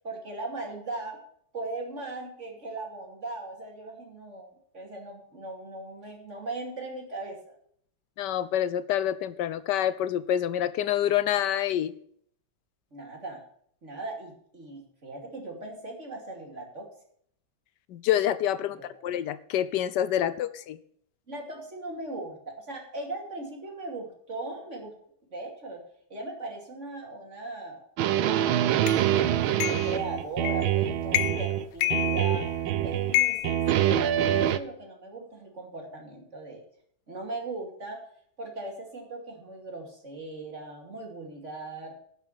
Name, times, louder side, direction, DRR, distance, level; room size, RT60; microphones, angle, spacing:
voice 1, 0.0-1.2 1.5-7.6 12.9-13.4 13.8-16.9 21.3-25.0 25.3-25.8 26.1-29.1 29.6-32.5 32.8-36.6 37.1-38.0 38.4-41.9, right 2 dB, 35° right, 1 dB, 2.9 m, -38 dB
voice 2, 8.2-11.9 17.9-20.8, left 11 dB, 70° left, 15 dB, 1.1 m, -27 dB
sound 1, 28.0-31.6 31.9-33.2 33.4-34.6, right 11 dB, 85° right, 1.5 m, -25 dB
sound 2, 28.9-29.0 29.6-29.9 30.4-30.7 31.1-31.5 31.8-32.6 33.1-34.4, left 15 dB, 90° left, 1.5 m, -28 dB
11.5 x 6.1 x 8.8 m, 0.65 s
omnidirectional pair, 2.2 m